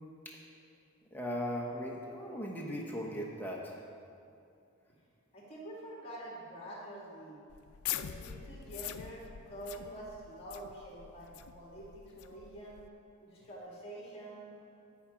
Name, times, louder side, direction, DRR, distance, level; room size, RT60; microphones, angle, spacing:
voice 1, 1.1-3.8, equal, 10° left, -2 dB, 1.0 m, -38 dB
voice 2, 5.3-7.4 7.9-12.8 13.2-14.5, right 1 dB, 25° left, -4 dB, 2.0 m, -47 dB
sound 1, 7.5-12.9, left 11 dB, 85° left, 0.4 m, -43 dB
15.0 x 5.0 x 5.8 m, 2.5 s
head